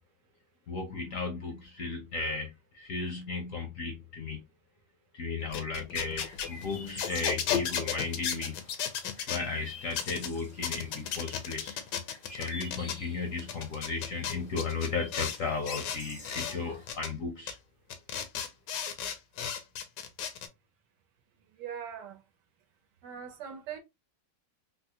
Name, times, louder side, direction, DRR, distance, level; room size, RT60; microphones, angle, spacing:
voice 1, 0.7-4.4 5.1-8.6 9.3-11.8 12.3-17.6, left 4 dB, 60° left, 0.9 m, -35 dB
sound 1, 5.4-9.4 9.9-10.3 10.6-13.0 13.4-15.4 15.6-16.5 16.9-17.1 17.5-17.6 17.9-20.5, left 8 dB, 75° left, 1.2 m, -34 dB
Chirp tweet, 6.2-16.9, left 2 dB, 45° left, 0.4 m, -49 dB
voice 2, 21.5-22.2 23.0-23.8, right 8 dB, 75° right, 1.3 m, -41 dB
3.9 x 2.1 x 2.7 m
omnidirectional pair, 2.0 m